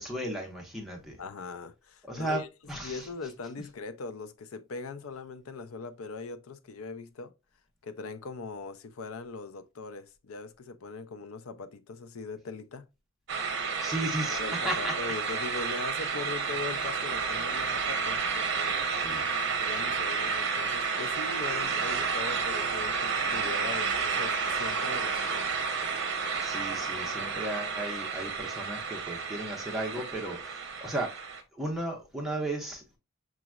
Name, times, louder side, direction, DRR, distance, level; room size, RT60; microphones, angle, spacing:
voice 1, 0.0-1.2 2.1-2.4 2.7-3.1 13.8-14.9 18.9-19.2 26.4-31.3 31.6-32.8, right 1 dB, ahead, 1.1 m, -35 dB
voice 2, 1.2-2.5 2.8-7.3 7.8-12.9 14.2-18.9 19.6-25.5, left 4 dB, 85° left, 0.5 m, -40 dB
sound 1, 13.3-31.4, right 5 dB, 60° right, 0.7 m, -31 dB
6.0 x 3.0 x 2.3 m
head